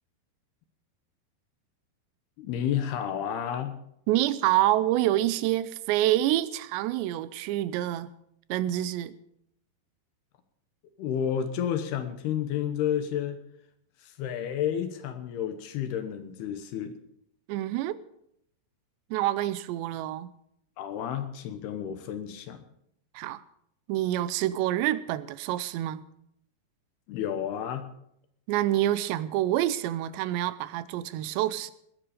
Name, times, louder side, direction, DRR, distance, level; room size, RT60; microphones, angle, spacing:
voice 1, 2.4-3.7 11.0-13.4 14.0-16.9 20.8-22.6 27.1-27.9, left 9 dB, 75° left, 2.9 m, -31 dB
voice 2, 4.1-8.1 8.5-9.1 17.5-18.0 19.1-20.3 23.1-23.4 23.9-26.0 28.5-31.7, right 14 dB, 85° right, 2.9 m, -27 dB
20.5 x 9.9 x 5.1 m
omnidirectional pair, 5.0 m